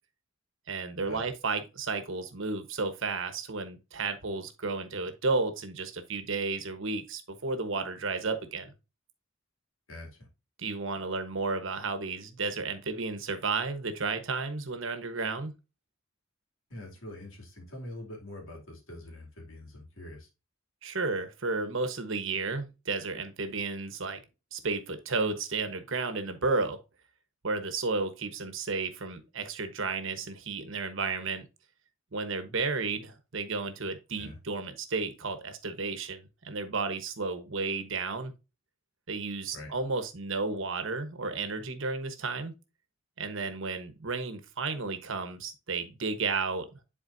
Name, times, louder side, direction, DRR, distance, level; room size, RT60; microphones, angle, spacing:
voice 1, 0.7-8.7 10.6-15.5 20.8-24.2 24.5-26.8 27.4-31.4 32.1-38.3 39.1-42.5 43.2-46.7, right 4 dB, 65° right, 9 dB, 1.2 m, -32 dB
voice 2, 9.9-10.3 16.7-20.3 34.2-34.4 39.5-39.7, left 1 dB, 70° left, 1 dB, 2.7 m, -44 dB
10.5 x 4.3 x 2.6 m, 0.28 s
head